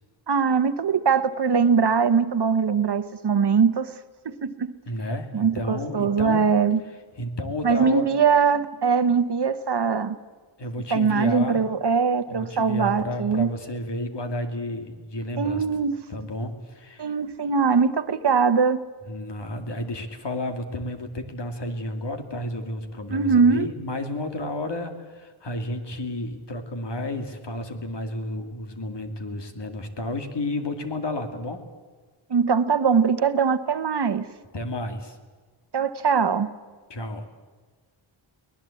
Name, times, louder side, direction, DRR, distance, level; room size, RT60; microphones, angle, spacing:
voice 1, 0.3-3.9 4.2-4.7 5.3-6.8 7.6-10.2 10.9-13.5 15.4-16.0 17.0-18.8 23.1-23.7 32.3-34.2 35.7-36.5, right 6 dB, 55° right, 1.0 m, -21 dB
voice 2, 4.9-6.5 7.2-8.1 10.6-11.6 12.3-15.6 16.1-17.1 19.1-31.6 34.5-35.2 36.9-37.2, left 1 dB, 55° left, 2.6 m, -31 dB
23.5 x 19.0 x 8.4 m
wide cardioid pair, 125°, 49 cm